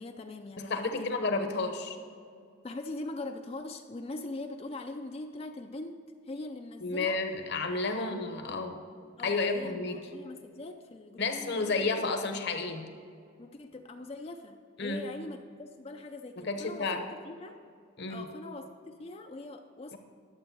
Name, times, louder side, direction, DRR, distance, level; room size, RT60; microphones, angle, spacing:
voice 1, 0.0-1.1 2.6-7.2 7.9-8.3 9.2-12.1 13.4-17.6 18.1-20.0, left 2 dB, 30° left, 5 dB, 0.4 m, -42 dB
voice 2, 0.6-2.0 6.8-8.8 9.2-10.0 11.2-12.9 14.8-15.0 16.4-17.1 18.0-18.2 19.9-20.0, left 3 dB, 55° left, 6 dB, 1.0 m, -31 dB
11.5 x 7.4 x 4.6 m, 2.3 s
head